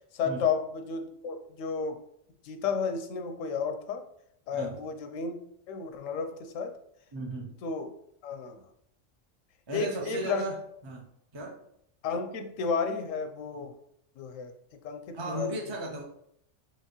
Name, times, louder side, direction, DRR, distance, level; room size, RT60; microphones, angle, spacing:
voice 1, 0.1-2.0 2.4-4.0 4.5-5.4 5.7-6.7 7.6-7.9 8.2-8.6 9.7-10.4 12.0-13.7 14.2-14.5 14.8-15.8, left 5 dB, 90° left, 7 dB, 1.0 m, -32 dB
voice 2, 7.1-7.5 9.7-10.6 10.8-11.0 11.3-11.6 15.1-16.1, right 2 dB, 40° right, -1 dB, 0.4 m, -35 dB
4.6 x 3.0 x 3.0 m, 0.70 s
omnidirectional pair, 1.3 m